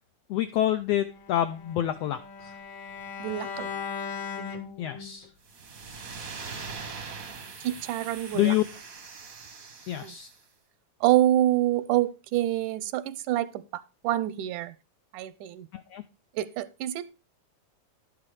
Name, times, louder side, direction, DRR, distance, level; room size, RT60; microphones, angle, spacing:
voice 1, 0.3-2.5 4.8-5.3 8.3-8.6 9.9-10.3 15.7-16.0, left 12 dB, 85° left, 1.4 m, -27 dB
Bowed string instrument, 1.1-5.3, left 6 dB, 55° left, 1.9 m, -38 dB
voice 2, 3.2-3.7 7.6-8.6 10.0-10.2 11.0-13.5 13.7-14.7 15.1-15.7 16.4-17.2, right 13 dB, 85° right, 2.2 m, -26 dB
sound 1, 5.4-10.4, right 5 dB, 50° right, 1.0 m, -42 dB
11.5 x 6.0 x 4.7 m
omnidirectional pair, 3.5 m